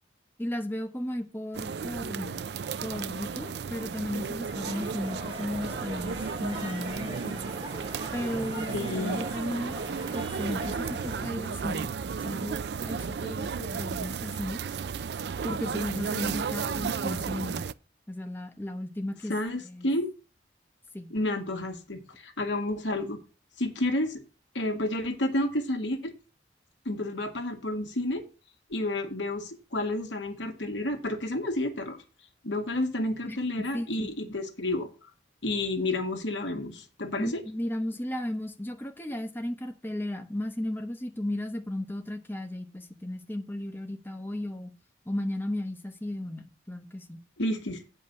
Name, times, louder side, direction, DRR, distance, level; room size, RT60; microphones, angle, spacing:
voice 1, 0.4-2.4 2.8-7.5 8.1-9.8 10.1-11.9 12.2-14.6 15.4-17.6 18.1-19.3 19.6-19.9 20.9-21.1 33.3-33.4 33.7-34.1 37.2-44.7 45.1-47.2, left 1 dB, 10° left, 0.9 m, -35 dB
sound 1, 1.5-17.7, right 6 dB, 65° right, 0.4 m, -34 dB
Crowd, 4.5-11.3, right 1 dB, 30° right, 2.7 m, -40 dB
voice 2, 8.7-9.3 19.3-20.1 21.1-23.2 23.6-24.2 24.6-26.1 26.9-28.2 28.7-32.0 32.4-34.9 35.4-37.4 47.4-47.8, left 1 dB, 85° left, 1.8 m, -30 dB
8.8 x 5.4 x 6.7 m
head